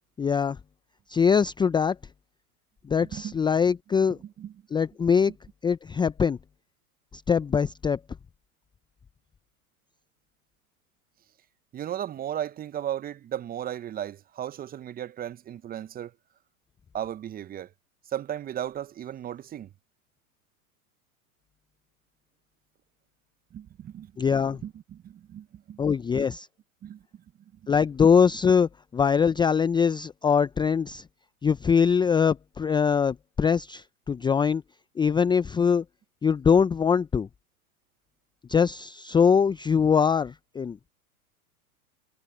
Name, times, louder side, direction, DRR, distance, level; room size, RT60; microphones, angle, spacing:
voice 1, 0.2-0.6 1.1-2.0 2.9-4.2 4.7-5.3 5.6-6.4 7.3-8.0 24.2-24.6 25.8-26.5 27.7-31.0 31.4-34.6 35.0-35.8 36.2-37.3 38.5-40.8, left 6 dB, 10° left, 0.7 m, -22 dB
voice 2, 3.0-3.3 3.7-3.8 4.1-4.5 11.7-16.1 16.9-17.7 18.1-19.7 23.5-24.1 24.6-25.8 26.1-26.3 26.8-27.0 27.6-27.7, right 10 dB, 20° right, 0.9 m, -35 dB
hypercardioid pair, 100°, 44 cm